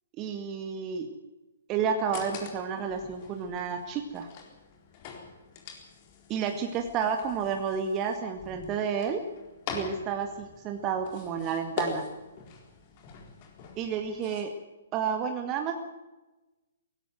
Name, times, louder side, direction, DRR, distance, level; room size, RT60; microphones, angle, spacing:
voice 1, 0.2-1.1 1.7-4.3 6.3-9.2 9.7-12.1 13.8-14.5 14.9-15.7, right 6 dB, 25° right, 5 dB, 1.9 m, -31 dB
sound 1, 2.0-14.4, left 6 dB, 35° left, 4.1 m, -43 dB
18.0 x 16.0 x 9.3 m, 1.1 s
figure-of-eight pair, 125°, 0 cm